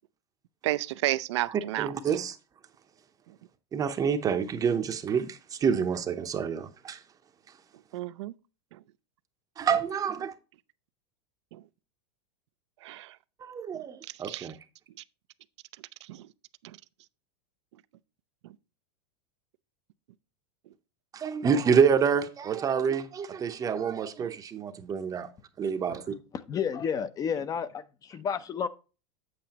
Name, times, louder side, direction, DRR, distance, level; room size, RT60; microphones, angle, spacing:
voice 1, 0.6-1.9 3.3-3.4 7.9-8.3 8.7-8.8 11.5-11.6 12.8-13.2 13.7-13.8 14.1-14.5 16.0-16.3 16.6-16.8 18.4-18.6 24.2-24.3, right 16 dB, 75° right, 0.5 m, -32 dB
voice 2, 1.8-2.4 3.7-7.0 9.6-10.3 13.4-14.5 21.1-25.3 25.6-26.1, right 6 dB, 25° right, 0.8 m, -27 dB
voice 3, 26.3-27.7 28.1-28.7, left 7 dB, 25° left, 0.6 m, -30 dB
8.3 x 7.7 x 2.9 m
supercardioid pair, 130°, 15 cm